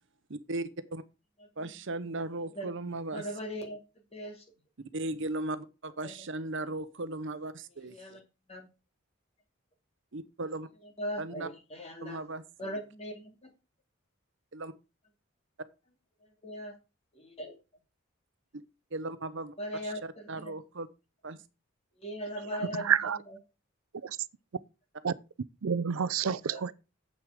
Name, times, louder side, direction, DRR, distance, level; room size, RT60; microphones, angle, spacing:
voice 1, 0.3-1.0 1.6-3.3 4.9-8.2 10.1-10.7 11.2-11.5 12.0-12.8 14.5-14.7 18.9-19.5 19.8-20.9 21.2-21.4, right 2 dB, 60° right, 0.9 m, -37 dB
voice 2, 3.1-3.8 4.1-4.4 6.0-6.1 7.9-8.2 8.5-8.7 11.0-12.2 12.6-13.3 16.4-16.8 17.2-17.5 19.6-20.5 22.0-22.9 23.3-23.4 26.5-26.6, equal, 30° left, 2.6 m, -39 dB
voice 3, 22.8-23.2 24.0-24.2 25.0-25.1 25.6-26.7, right 7 dB, 85° right, 0.5 m, -28 dB
9.3 x 7.8 x 4.9 m
head